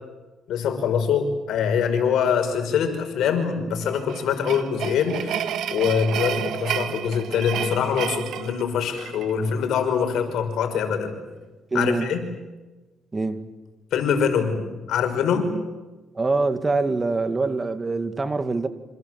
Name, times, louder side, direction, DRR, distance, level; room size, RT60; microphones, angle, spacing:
voice 1, 0.5-5.4 5.7-11.2 11.7-12.2 13.9-15.5, left 7 dB, 80° left, 5.6 m, -24 dB
sound 1, 3.8-9.3, right 9 dB, 80° right, 1.7 m, -30 dB
voice 2, 11.7-12.1 13.1-13.5 16.1-18.7, right 3 dB, 25° right, 2.2 m, -24 dB
28.0 x 27.0 x 7.9 m
cardioid pair, 90°, 0 cm